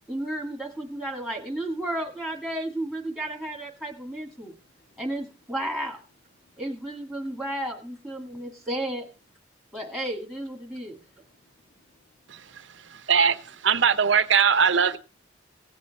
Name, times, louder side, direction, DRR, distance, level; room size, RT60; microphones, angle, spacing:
voice 1, 0.1-4.5 5.0-6.0 6.6-9.1 9.7-11.0, right 1 dB, 5° left, 2.2 m, -33 dB
voice 2, 4.3-5.0 6.4-6.6 8.3-8.7 10.7-13.1, left 2 dB, 70° left, 2.0 m, -67 dB
voice 3, 12.3-15.0, right 6 dB, 85° right, 0.8 m, -22 dB
17.0 x 7.5 x 4.2 m
head